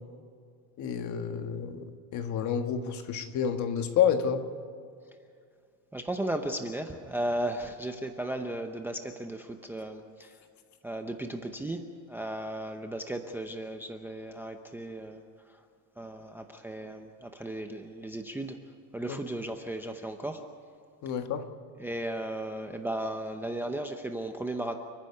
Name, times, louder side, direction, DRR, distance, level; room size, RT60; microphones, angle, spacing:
voice 1, 0.8-4.4 19.1-19.2 21.0-21.4, left 8 dB, 40° left, 7 dB, 1.6 m, -29 dB
voice 2, 5.9-10.4 10.8-15.2 16.0-18.6 18.9-20.4 21.8-24.8, right 1 dB, 5° right, 5 dB, 0.7 m, -35 dB
30.0 x 10.0 x 9.6 m, 2.3 s
cardioid pair, 160°, 43 cm